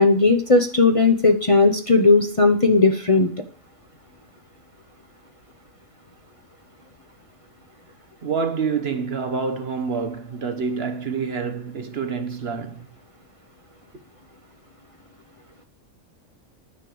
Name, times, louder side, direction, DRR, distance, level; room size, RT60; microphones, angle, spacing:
voice 1, 0.0-3.3, left 3 dB, 30° left, 0.9 m, -17 dB
voice 2, 8.2-12.9, right 5 dB, 50° right, 1.2 m, -27 dB
10.5 x 6.6 x 7.7 m
omnidirectional pair, 1.4 m